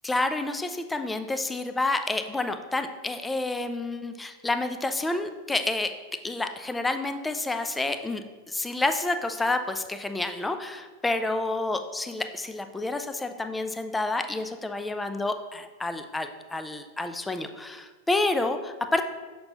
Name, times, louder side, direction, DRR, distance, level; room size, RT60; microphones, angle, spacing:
voice 1, 0.0-5.9 6.2-19.0, left 2 dB, 10° left, 8 dB, 0.5 m, -29 dB
6.8 x 5.2 x 2.9 m, 1.3 s
figure-of-eight pair, 90°, 0 cm